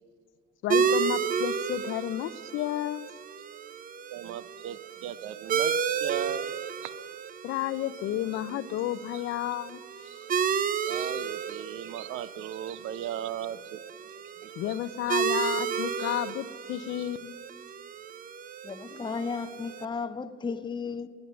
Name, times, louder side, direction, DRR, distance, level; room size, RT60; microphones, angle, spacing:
voice 1, 0.6-3.1 7.4-9.8 14.6-17.4, left 13 dB, 90° left, 0.5 m, -31 dB
sound 1, 0.7-19.8, right 7 dB, 45° right, 0.6 m, -32 dB
voice 2, 4.1-6.5 6.8-6.9 10.1-10.2 10.8-13.8 14.4-14.8 16.0-16.1 17.0-17.1, right 11 dB, 90° right, 0.5 m, -37 dB
voice 3, 18.6-21.1, left 5 dB, 25° left, 0.6 m, -34 dB
20.5 x 8.0 x 6.8 m
cardioid pair, 90°, 20 cm